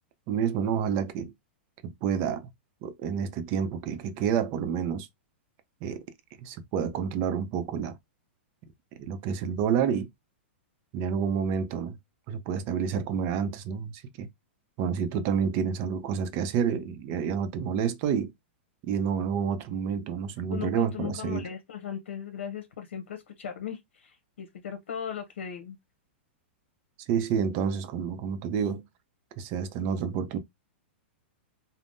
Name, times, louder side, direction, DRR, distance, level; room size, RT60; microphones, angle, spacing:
voice 1, 0.3-1.3 1.8-2.5 2.8-5.1 5.8-6.0 6.4-7.9 9.1-10.1 10.9-12.0 12.3-14.3 14.8-18.3 18.9-21.4 27.1-28.8 29.4-30.4, right 7 dB, 40° right, 0.6 m, -29 dB
voice 2, 20.5-25.8, left 8 dB, 90° left, 0.8 m, -37 dB
3.5 x 2.1 x 2.6 m
hypercardioid pair, 145°, 6 cm